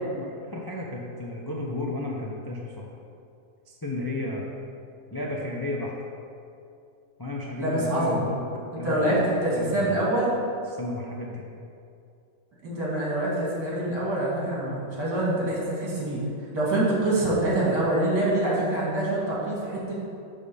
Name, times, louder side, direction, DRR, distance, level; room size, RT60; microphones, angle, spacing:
voice 1, 0.1-2.9 3.7-4.5 5.1-5.9 7.2-8.4 8.7-9.2 9.5-10.0 10.7-11.4, left 2 dB, 30° left, -3 dB, 0.4 m, -33 dB
voice 2, 7.6-8.3 8.8-10.3 12.6-16.2 16.5-20.0, right 1 dB, 70° right, -6 dB, 2.9 m, -25 dB
9.5 x 3.6 x 6.9 m, 2.5 s
omnidirectional pair, 1.9 m